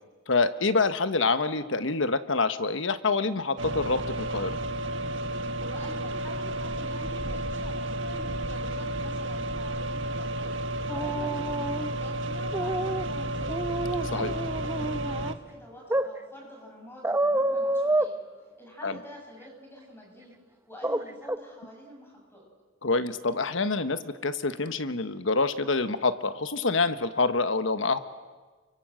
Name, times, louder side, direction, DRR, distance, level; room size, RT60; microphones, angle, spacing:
voice 1, 0.3-4.6 14.1-14.3 18.8-19.0 22.8-28.0, left 3 dB, 70° left, 11 dB, 1.2 m, -26 dB
sound 1, 3.6-15.3, right 1 dB, 65° right, 1.5 m, -32 dB
voice 2, 5.6-13.6 14.1-18.2 18.6-20.4 20.7-22.5, equal, 10° left, 0 dB, 6.9 m, -47 dB
sound 2, 10.9-11.9 12.5-13.0 13.5-15.3 15.9-16.1 17.0-18.1 20.8-21.0 21.3-21.4, right 1 dB, 10° right, 0.8 m, -28 dB
29.5 x 24.0 x 7.7 m, 1.4 s
head